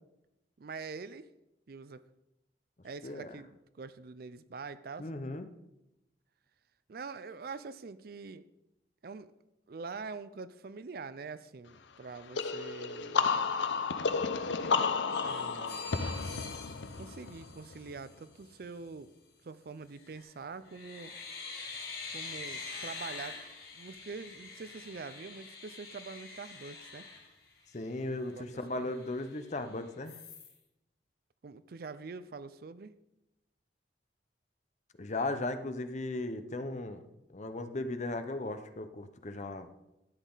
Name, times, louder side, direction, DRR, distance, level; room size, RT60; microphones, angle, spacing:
voice 1, 0.6-1.3 1.7-2.0 2.8-5.1 6.9-8.4 9.0-9.3 9.7-13.3 15.2-16.0 17.0-19.1 19.4-21.1 22.1-23.4 23.7-27.1 28.3-28.9 31.4-32.9, right 4 dB, 55° right, 15 dB, 0.4 m, -44 dB
voice 2, 3.0-3.4 5.0-5.5 27.7-30.2 35.0-37.0 37.3-39.7, left 2 dB, 40° left, 9 dB, 0.7 m, -37 dB
sound 1, 12.3-17.9, left 5 dB, 80° left, 0.6 m, -32 dB
sound 2, 15.1-18.1 19.9-20.3 20.7-27.9 28.4-28.5 28.7-29.6 30.1-30.5, left 4 dB, 60° left, 2.6 m, -45 dB
12.0 x 8.1 x 3.9 m, 0.91 s
head